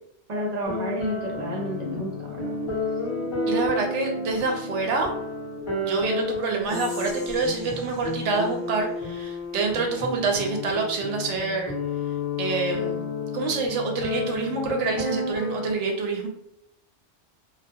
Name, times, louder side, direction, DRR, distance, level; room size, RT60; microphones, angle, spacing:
voice 1, 0.3-2.5, equal, 45° right, -2 dB, 0.6 m, -30 dB
sound 1, 0.6-15.7, left 2 dB, 30° left, 0.8 m, -31 dB
voice 2, 3.5-5.1 5.8-11.7 12.4-13.0 13.3-16.3, right 4 dB, 85° right, 2 dB, 0.9 m, -27 dB
Whispering, 6.6-9.8, left 1 dB, 5° right, 0.8 m, -46 dB
2.3 x 2.2 x 2.6 m, 0.77 s
omnidirectional pair, 1.2 m